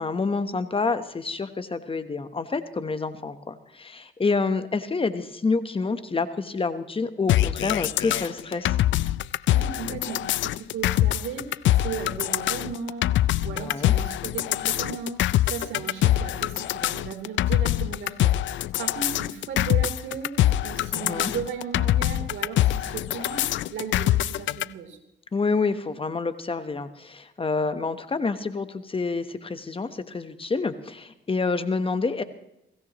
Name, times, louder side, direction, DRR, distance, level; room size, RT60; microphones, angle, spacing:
voice 1, 0.0-8.8 13.6-13.9 20.9-21.3 25.3-32.2, left 4 dB, 25° left, 11 dB, 1.2 m, -28 dB
sound 1, 7.3-24.6, left 14 dB, 75° left, 0.5 m, -24 dB
voice 2, 9.5-25.0, right 6 dB, 75° right, 3 dB, 3.5 m, -36 dB
22.0 x 17.0 x 3.1 m, 0.84 s
cardioid pair, 90°, 20 cm